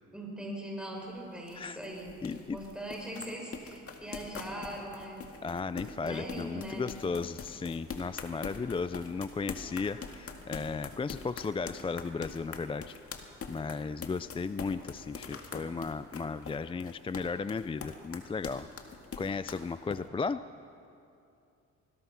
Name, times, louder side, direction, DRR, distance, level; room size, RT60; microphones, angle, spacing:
voice 1, 0.1-5.2 6.0-6.9, right 1 dB, 5° right, -1 dB, 6.2 m, -41 dB
sound 1, 1.0-20.0, left 5 dB, 50° left, 2.1 m, -43 dB
voice 2, 2.2-2.6 5.4-13.0 13.5-18.7 19.2-20.5, left 4 dB, 20° left, 13 dB, 0.4 m, -35 dB
25.0 x 20.0 x 5.9 m, 2.6 s
cardioid pair, 90°, 30 cm